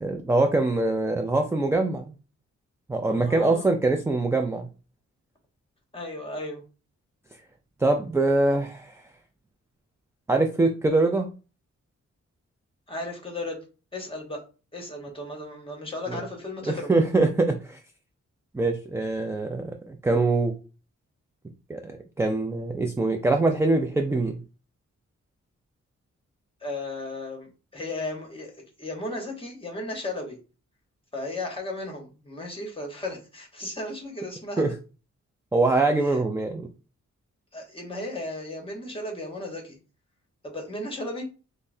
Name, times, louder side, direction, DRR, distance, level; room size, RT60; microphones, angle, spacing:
voice 1, 0.0-2.1 2.9-4.7 7.8-8.9 10.3-11.3 16.1-16.2 16.7-17.8 18.5-20.5 21.7-24.4 34.6-34.7 35.5-36.7, right 2 dB, 10° right, 4 dB, 0.3 m, -23 dB
voice 2, 3.1-3.7 5.9-6.6 12.9-13.6 13.9-14.4 14.7-16.9 26.6-30.4 31.1-34.7 36.0-36.2 37.5-39.8 40.4-41.3, left 2 dB, 20° left, 2 dB, 1.1 m, -35 dB
5.4 x 2.1 x 2.6 m, 0.34 s
wide cardioid pair, 125°, 29 cm